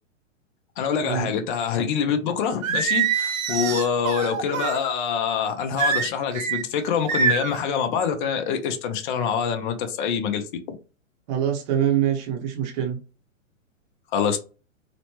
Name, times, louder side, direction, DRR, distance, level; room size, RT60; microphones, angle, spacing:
voice 1, 0.8-10.4 14.1-14.4, left 7 dB, 40° left, 0.5 m, -25 dB
Singing, 2.6-4.8 5.8-6.6 7.1-7.6, right 7 dB, 90° right, 0.6 m, -24 dB
voice 2, 11.3-13.0, right 10 dB, 30° right, 0.7 m, -24 dB
3.0 x 2.1 x 2.9 m
hypercardioid pair, 125°, 39 cm